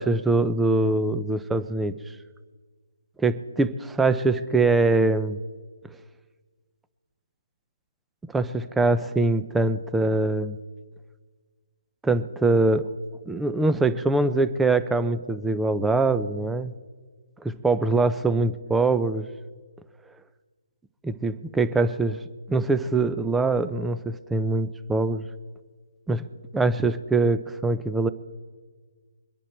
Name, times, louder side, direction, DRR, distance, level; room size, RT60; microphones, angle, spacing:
voice 1, 0.0-1.9 3.2-5.4 8.3-10.6 12.0-12.9 13.3-16.7 17.4-19.3 21.0-22.2 22.5-25.3 26.1-26.2 26.5-28.1, right 3 dB, 5° right, 12 dB, 0.6 m, -23 dB
23.5 x 10.5 x 4.4 m, 1.5 s
figure-of-eight pair, 150°, 0 cm